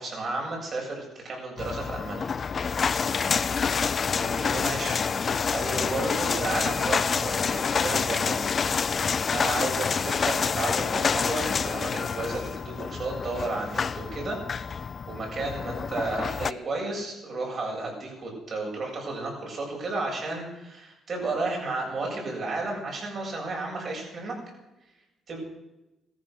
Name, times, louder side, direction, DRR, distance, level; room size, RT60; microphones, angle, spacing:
voice 1, 0.0-2.3 3.7-3.8 4.2-8.4 9.3-14.4 15.1-24.4 25.3-25.4, right 2 dB, 50° right, -1 dB, 7.8 m, -33 dB
sound 1, 1.6-16.5, left 6 dB, 45° left, 0.5 m, -27 dB
15.0 x 14.5 x 6.6 m, 0.99 s
cardioid pair, 90°, 0 cm